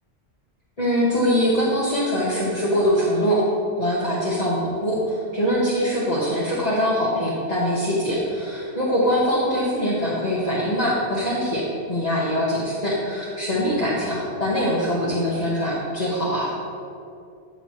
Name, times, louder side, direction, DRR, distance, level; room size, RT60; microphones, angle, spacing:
voice 1, 0.8-3.4 3.8-16.5, equal, 35° left, -8 dB, 1.5 m, -23 dB
12.5 x 6.7 x 3.1 m, 2.5 s
omnidirectional pair, 1.2 m